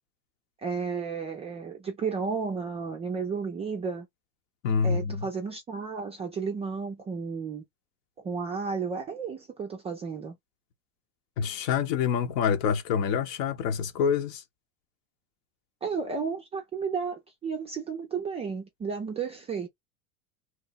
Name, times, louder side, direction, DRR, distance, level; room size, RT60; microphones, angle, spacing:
voice 1, 0.6-4.1 4.8-7.6 8.2-10.4 15.8-19.7, right 5 dB, 15° right, 0.3 m, -33 dB
voice 2, 4.6-5.3 11.4-14.4, left 7 dB, 60° left, 0.9 m, -26 dB
2.9 x 2.1 x 4.0 m
hypercardioid pair, 115°, 45 cm